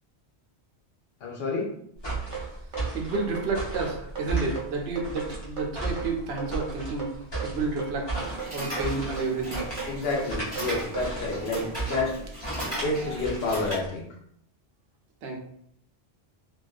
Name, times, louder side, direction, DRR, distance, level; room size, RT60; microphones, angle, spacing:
voice 1, 1.2-1.7 9.8-12.2 12.5-14.1, left 3 dB, 65° left, -2 dB, 0.8 m, -29 dB
sound 1, 2.0-14.0, right 2 dB, 30° left, 0.7 m, -35 dB
sound 2, 2.3-12.1, right 8 dB, 40° right, 0.5 m, -37 dB
voice 2, 2.9-7.1 7.4-8.1 8.5-9.7 15.2-15.4, right 3 dB, 70° right, 1 dB, 0.8 m, -30 dB
sound 3, 8.1-13.8, equal, 15° right, 1.3 m, -38 dB
2.3 x 2.3 x 2.3 m, 0.70 s
omnidirectional pair, 1.1 m